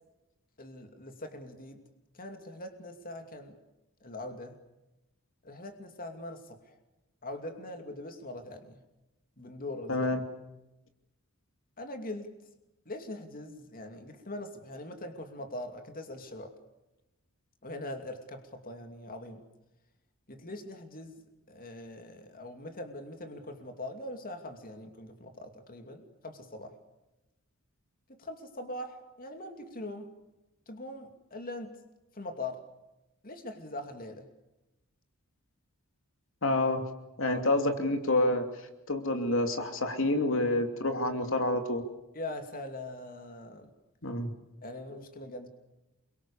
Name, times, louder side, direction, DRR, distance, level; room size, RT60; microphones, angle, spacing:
voice 1, 0.6-1.8 2.1-3.6 4.0-4.6 5.4-6.8 7.2-8.8 9.4-10.1 11.8-12.3 12.9-16.5 17.6-19.4 20.3-21.2 21.5-26.8 28.2-30.1 30.7-31.8 32.1-32.6 33.2-34.3 37.3-37.4 42.1-43.7 44.6-45.5, left 1 dB, 45° left, 6 dB, 2.7 m, -42 dB
voice 2, 9.9-10.2 36.4-36.8 37.2-38.5 38.9-41.8 44.0-44.3, left 2 dB, 65° left, 6 dB, 2.9 m, -28 dB
28.5 x 23.5 x 7.2 m, 0.95 s
head